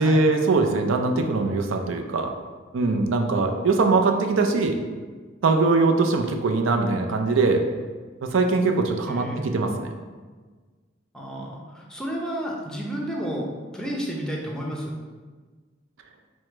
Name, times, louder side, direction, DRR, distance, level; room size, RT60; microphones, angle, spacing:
voice 1, 0.0-2.3 2.7-4.8 5.4-7.6 8.3-9.9, right 3 dB, 85° right, 4 dB, 0.5 m, -21 dB
voice 2, 9.0-9.6 11.1-13.5 13.7-14.9, equal, 5° left, -2 dB, 0.6 m, -31 dB
4.8 x 2.1 x 4.4 m, 1.4 s
head